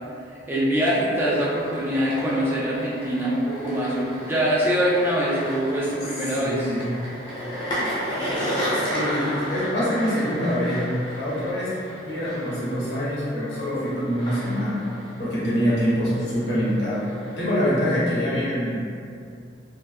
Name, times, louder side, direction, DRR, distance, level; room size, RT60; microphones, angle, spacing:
voice 1, 0.5-6.7, equal, 10° right, -8 dB, 0.4 m, -23 dB
sound 1, 1.0-18.0, equal, 25° left, 0.6 m, -33 dB
voice 2, 6.4-6.8 8.7-10.8 11.1-11.7 12.1-14.8 15.2-18.8, equal, 60° left, -9 dB, 1.0 m, -25 dB
3.1 x 2.6 x 2.4 m, 2.4 s
head